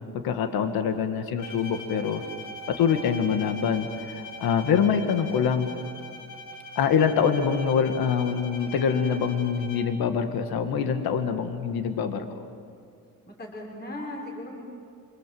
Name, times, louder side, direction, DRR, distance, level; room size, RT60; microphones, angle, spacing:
voice 1, 0.1-2.2 2.7-5.7 6.8-12.3, left 7 dB, 75° left, 7 dB, 1.9 m, -25 dB
Bowed string instrument, 1.4-10.1, left 1 dB, 55° left, 2.2 m, -42 dB
voice 2, 13.3-14.7, left 1 dB, 25° left, -1 dB, 5.7 m, -37 dB
27.0 x 26.5 x 7.8 m, 2.2 s
cardioid pair, 150°, 37 cm